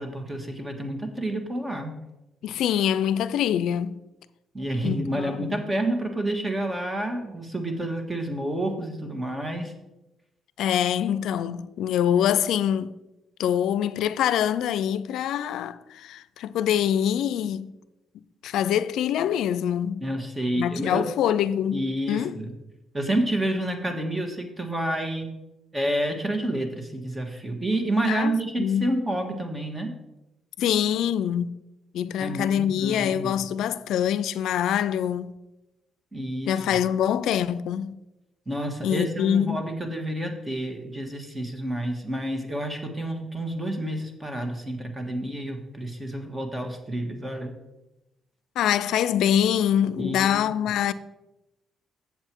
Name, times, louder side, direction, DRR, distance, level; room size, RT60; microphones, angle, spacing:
voice 1, 0.0-2.0 4.5-9.7 20.0-21.1 21.7-22.5 22.9-25.3 25.7-29.9 32.2-33.4 36.1-36.8 38.5-47.5 50.0-50.4, right 1 dB, 20° right, 1.5 m, -29 dB
voice 2, 2.4-4.0 4.8-5.5 10.6-12.9 13.4-17.7 18.4-20.0 20.6-21.8 22.1-22.4 28.1-28.3 28.6-28.9 30.6-31.6 31.9-35.3 36.5-37.9 38.8-39.6 48.6-50.9, left 10 dB, 80° left, 0.4 m, -24 dB
7.7 x 7.2 x 4.5 m
cardioid pair, 90°, 0 cm